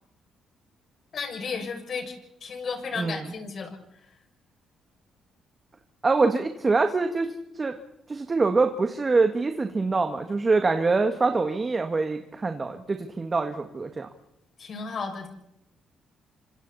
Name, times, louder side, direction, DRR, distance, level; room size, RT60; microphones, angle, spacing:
voice 1, 1.1-2.1 2.4-3.8 14.6-15.3, left 5 dB, 55° left, 3 dB, 6.5 m, -33 dB
voice 2, 6.0-7.3 7.5-7.8 8.1-14.1, right 3 dB, 30° right, 6 dB, 1.8 m, -24 dB
29.0 x 26.0 x 4.3 m, 0.79 s
cardioid pair, 90°, 0 cm